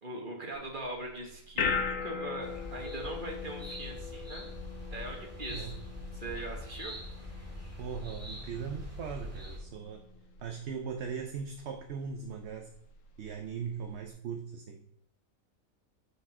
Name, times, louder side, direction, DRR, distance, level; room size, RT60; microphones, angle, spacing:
voice 1, 0.0-4.5 4.9-5.7 6.1-6.9, right 2 dB, 35° right, 0 dB, 1.6 m, -41 dB
sound 1, 0.5-14.1, left 6 dB, 65° left, 1.2 m, -41 dB
sound 2, 2.4-9.6, left 1 dB, 10° right, 1.9 m, -43 dB
voice 2, 7.8-10.0 10.4-12.7 13.2-14.8, right 6 dB, 60° right, 5 dB, 0.8 m, -39 dB
6.6 x 5.1 x 6.0 m, 0.72 s
omnidirectional pair, 1.5 m